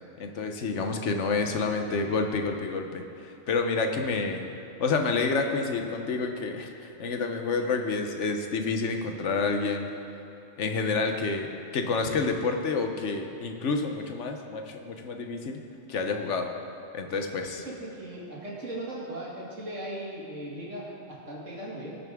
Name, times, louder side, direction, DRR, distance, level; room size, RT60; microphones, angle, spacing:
voice 1, 0.2-4.4 4.8-6.7 7.0-9.9 10.6-11.5 11.7-15.6 15.9-16.5 16.9-17.6, left 4 dB, 70° left, 4 dB, 1.2 m, -29 dB
voice 2, 17.5-22.0, right 1 dB, 80° right, -5 dB, 2.6 m, -38 dB
19.5 x 6.9 x 3.6 m, 3.0 s
omnidirectional pair, 1.3 m